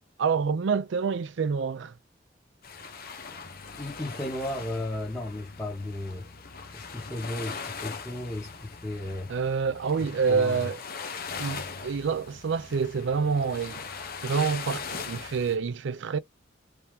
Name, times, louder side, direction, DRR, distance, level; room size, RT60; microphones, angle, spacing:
voice 1, 0.2-1.9 9.3-10.8 11.4-13.8 14.2-16.2, right 5 dB, 65° right, 0.4 m, -27 dB
sound 1, 2.6-15.6, left 5 dB, 50° left, 0.9 m, -40 dB
voice 2, 3.8-6.3 6.7-9.3 10.0-10.7, left 1 dB, 15° left, 1.4 m, -35 dB
3.3 x 2.8 x 3.3 m
head